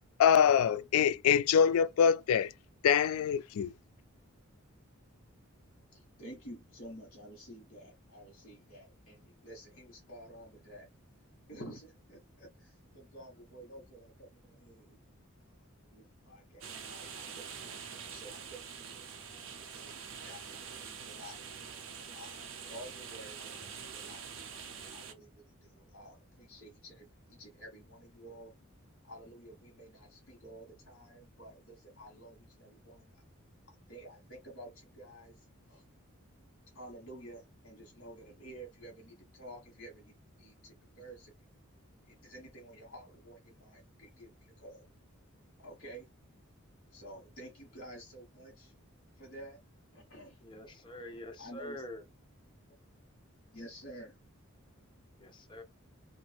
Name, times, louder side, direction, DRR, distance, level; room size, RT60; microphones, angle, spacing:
voice 1, 0.2-2.5 2.8-3.7, left 8 dB, 80° left, 0.3 m, -25 dB
voice 2, 5.9-10.9 11.5-15.0 15.5-21.4 22.1-24.4 24.8-28.5 29.0-33.2 33.7-35.8 36.7-40.1 40.4-41.3 42.1-44.8 45.6-46.1 46.9-48.7 49.2-49.6 49.9-50.4 51.4-51.8 53.5-54.2, right 1 dB, 50° left, 1.2 m, -51 dB
sound 1, 16.6-25.1, right 6 dB, 65° right, 0.6 m, -45 dB
voice 3, 50.4-52.0 55.2-55.6, left 1 dB, 20° left, 0.6 m, -45 dB
2.7 x 2.5 x 3.3 m
head